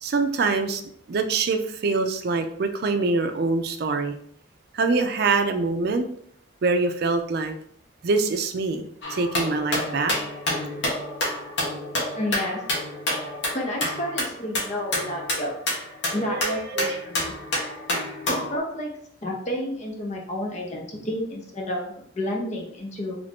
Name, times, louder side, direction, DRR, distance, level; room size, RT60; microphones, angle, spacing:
voice 1, 0.0-0.8 1.1-4.1 4.7-6.1 6.6-7.5 8.0-10.1 16.1-17.0, right 3 dB, 60° right, 7 dB, 0.4 m, -24 dB
sound 1, 9.0-18.6, left 1 dB, 85° left, 1.1 m, -29 dB
voice 2, 12.1-12.6 13.5-15.5 16.1-17.3 18.3-18.9 19.2-23.2, left 1 dB, 40° left, 0 dB, 0.8 m, -30 dB
3.2 x 2.6 x 3.4 m, 0.64 s
head